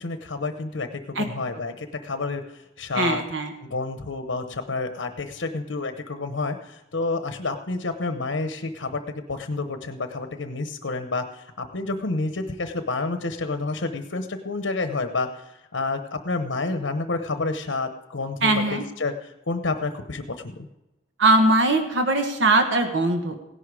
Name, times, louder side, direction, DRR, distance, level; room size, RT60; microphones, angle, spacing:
voice 1, 0.0-3.2 3.6-9.0 9.3-20.7, left 3 dB, 90° left, 8 dB, 1.0 m, -29 dB
voice 2, 2.9-3.5 18.4-18.8 21.2-23.4, right 2 dB, 85° right, 4 dB, 1.4 m, -21 dB
17.0 x 11.0 x 4.9 m, 0.98 s
head